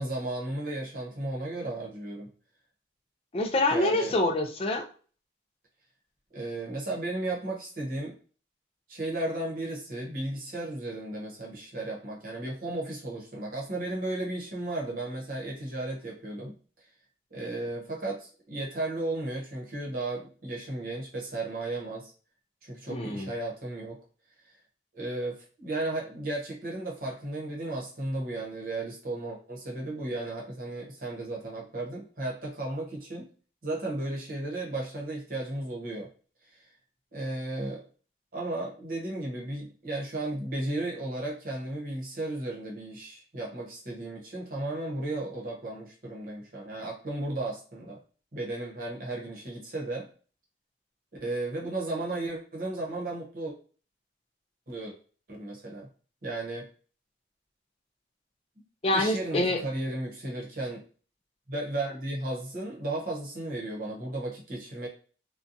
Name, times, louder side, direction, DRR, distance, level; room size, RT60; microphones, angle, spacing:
voice 1, 0.0-2.3 3.7-4.1 6.3-8.1 8.9-16.5 17.3-22.1 22.6-24.0 24.9-33.3 33.6-36.1 37.1-37.8 38.3-48.0 48.3-50.1 51.2-53.5 54.7-54.9 55.3-55.9 56.2-56.7 58.9-60.8 61.5-64.9, right 2 dB, 50° right, -2 dB, 0.9 m, -34 dB
voice 2, 3.3-4.8 22.9-23.3 58.8-59.6, left 1 dB, 30° left, 3 dB, 0.4 m, -26 dB
2.7 x 2.2 x 2.5 m, 0.39 s
head